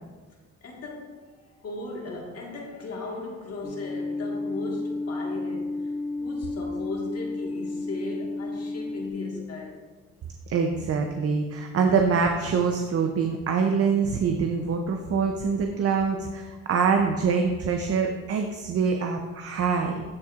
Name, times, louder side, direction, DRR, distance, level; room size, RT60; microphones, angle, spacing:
voice 1, 0.6-5.9 6.2-9.8, left 3 dB, 55° left, 1.6 m, -37 dB
sound 1, 3.6-9.1, left 2 dB, ahead, 0.6 m, -32 dB
voice 2, 10.5-20.0, right 5 dB, 50° right, 0.6 m, -25 dB
12.5 x 4.3 x 2.4 m
cardioid pair, 90°, 30 cm